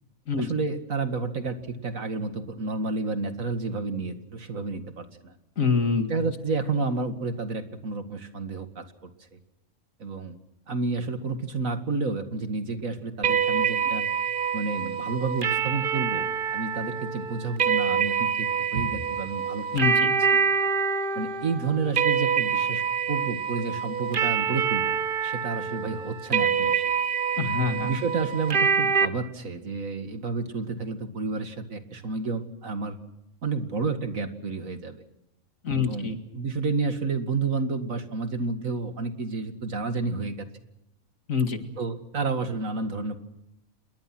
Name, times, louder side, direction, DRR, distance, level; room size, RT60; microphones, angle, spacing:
voice 1, 0.4-5.3 6.1-9.4 10.0-10.4 10.7-14.0 14.5-16.3 16.5-19.7 20.0-20.4 21.2-22.8 23.1-24.9 25.2-26.8 27.8-33.0 33.4-35.0 35.8-36.1 36.3-40.5 41.8-43.2, right 4 dB, 75° right, 8 dB, 2.4 m, -30 dB
voice 2, 5.6-6.1 19.7-20.1 27.4-27.9 35.6-36.2 41.3-41.6, left 5 dB, 70° left, 7 dB, 2.6 m, -25 dB
sound 1, 13.2-29.1, right 6 dB, 40° right, 1.2 m, -26 dB
28.0 x 21.5 x 6.1 m, 0.85 s
omnidirectional pair, 1.4 m